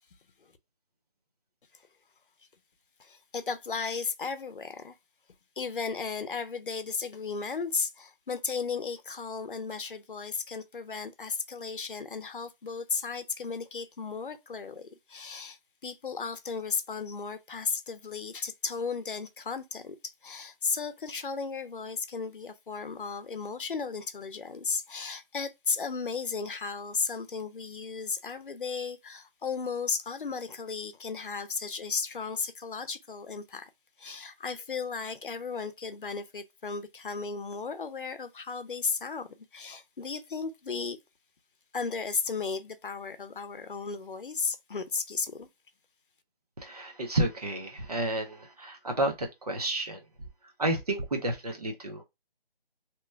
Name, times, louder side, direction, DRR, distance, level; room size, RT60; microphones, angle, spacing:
voice 1, 3.0-5.0 5.6-19.9 20.2-33.7 34.0-41.0 41.7-45.5, left 5 dB, 60° left, 0.7 m, -35 dB
voice 2, 46.6-50.0 50.6-52.0, right 1 dB, 40° right, 0.9 m, -31 dB
2.9 x 2.2 x 3.3 m
figure-of-eight pair, 170°, 29 cm